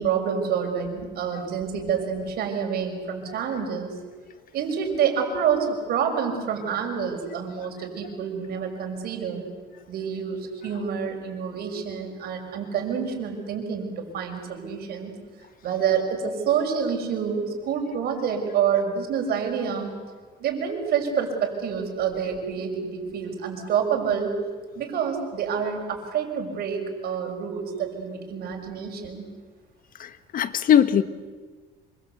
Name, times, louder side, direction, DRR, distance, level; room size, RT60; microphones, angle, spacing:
voice 1, 0.0-3.9 4.5-9.4 9.9-15.1 15.6-19.9 20.4-24.3 24.7-29.3, right 7 dB, 65° right, 3 dB, 6.4 m, -27 dB
voice 2, 30.0-31.0, left 9 dB, 55° left, 12 dB, 1.5 m, -20 dB
27.0 x 25.0 x 8.3 m, 1.4 s
cardioid pair, 110°, 17 cm